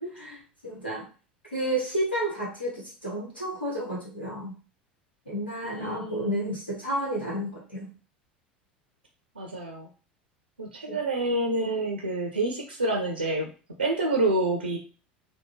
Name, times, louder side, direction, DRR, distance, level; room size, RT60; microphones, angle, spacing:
voice 1, 0.1-1.1 1.5-4.5 5.3-7.9 10.9-11.0, right 1 dB, 85° left, -6 dB, 1.2 m, -31 dB
voice 2, 5.6-6.5 9.4-9.9 10.6-13.5 13.8-14.8, right 2 dB, 80° right, 2 dB, 0.5 m, -28 dB
3.4 x 2.2 x 3.0 m, 0.36 s
figure-of-eight pair, 75°, 5 cm